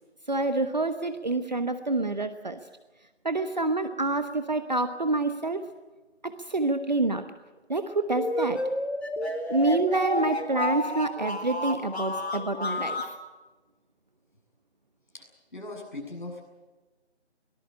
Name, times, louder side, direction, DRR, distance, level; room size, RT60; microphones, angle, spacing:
voice 1, 0.3-2.6 3.2-5.6 6.5-7.2 7.7-8.6 9.5-13.0, right 2 dB, 40° right, 9 dB, 1.1 m, -27 dB
sound 1, 8.2-13.2, left 1 dB, 65° left, 4.2 m, -30 dB
voice 2, 15.1-16.4, left 2 dB, 45° left, 1 dB, 7.5 m, -40 dB
23.5 x 19.0 x 8.7 m, 1.2 s
figure-of-eight pair, 160°, 34 cm